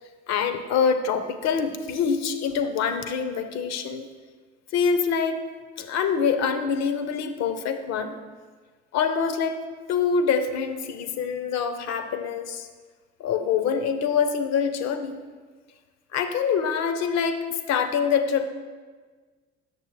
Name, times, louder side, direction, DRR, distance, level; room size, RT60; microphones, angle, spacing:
voice 1, 0.3-4.1 4.7-5.4 5.8-8.1 8.9-9.6 9.9-12.7 13.2-15.2 16.1-18.5, left 6 dB, 60° left, 9 dB, 0.6 m, -25 dB
6.8 x 6.6 x 3.1 m, 1.5 s
hypercardioid pair, 50°, 30 cm